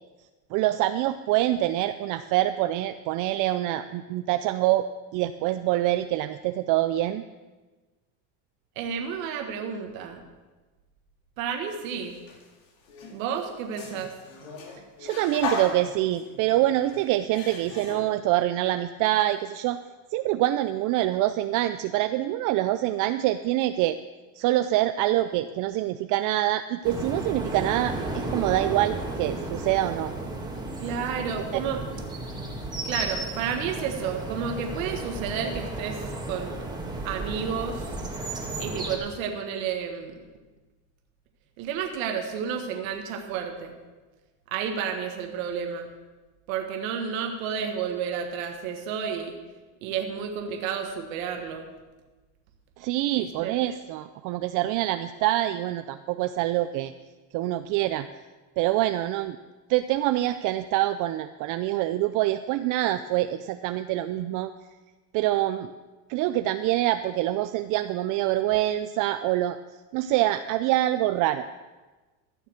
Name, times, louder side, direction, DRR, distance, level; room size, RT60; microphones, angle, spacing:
voice 1, 0.5-4.9 5.1-7.2 15.0-19.8 20.1-24.0 24.4-30.1 31.5-31.6 52.8-56.9 57.3-58.1 58.6-59.4 59.7-64.5 65.1-65.7 66.1-69.6 69.9-71.5, right 14 dB, 50° right, 10 dB, 0.5 m, -25 dB
voice 2, 8.7-10.2 11.4-12.2 13.1-14.1 30.8-31.8 32.8-36.6 37.0-37.8 38.6-40.1 41.6-43.8 44.5-45.9 46.5-49.3 49.8-51.7 53.1-53.6, right 7 dB, 85° right, 3 dB, 1.6 m, -31 dB
sound 1, 11.9-12.5 12.8-18.0, left 4 dB, 60° left, 2.7 m, -37 dB
sound 2, 26.8-39.0, right 2 dB, 10° right, 1.8 m, -33 dB
14.5 x 7.0 x 6.4 m, 1.2 s
supercardioid pair, 130°, 39 cm